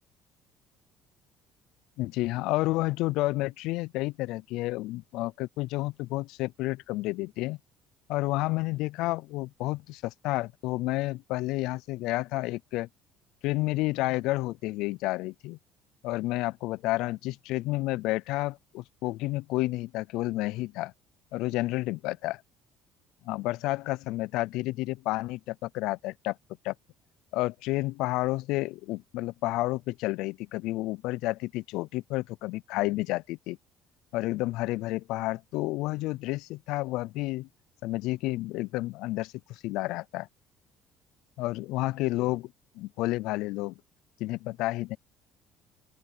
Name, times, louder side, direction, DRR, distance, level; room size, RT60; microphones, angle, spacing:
voice 1, 2.0-7.6 8.1-12.9 13.4-15.6 16.0-20.9 21.3-22.4 23.2-26.4 26.6-26.7 27.3-33.6 34.1-37.5 37.8-40.3 41.4-43.7 44.2-45.0, left 19 dB, 80° left, 0.3 m, -30 dB
open air
cardioid pair, 155°, 0 cm